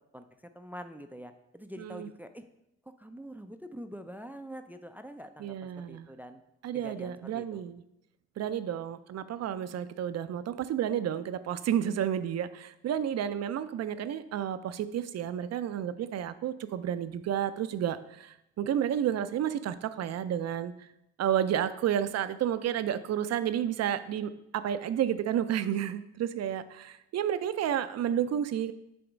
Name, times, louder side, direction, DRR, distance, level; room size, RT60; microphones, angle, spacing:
voice 1, 0.1-2.5 3.0-6.4 6.7-7.6, equal, 5° right, 8 dB, 0.4 m, -45 dB
voice 2, 1.8-2.1 5.4-6.1 6.6-7.8 8.4-20.7 21.2-28.7, right 10 dB, 55° right, 12 dB, 0.5 m, -31 dB
7.8 x 3.5 x 5.1 m, 0.85 s
cardioid pair, 90°, 30 cm